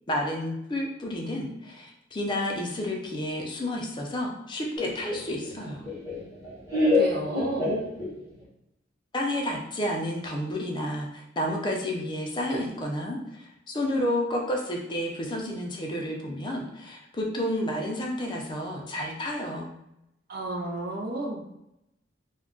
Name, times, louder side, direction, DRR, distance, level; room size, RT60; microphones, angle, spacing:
voice 1, 0.1-5.8 9.1-19.7, left 1 dB, 25° left, 0 dB, 0.4 m, -31 dB
Laughter, 4.8-8.4, left 2 dB, 20° right, 1.0 m, -27 dB
voice 2, 6.9-7.7 12.5-12.6 20.3-21.4, right 2 dB, 55° right, 0 dB, 0.6 m, -32 dB
2.3 x 2.2 x 3.6 m, 0.83 s
head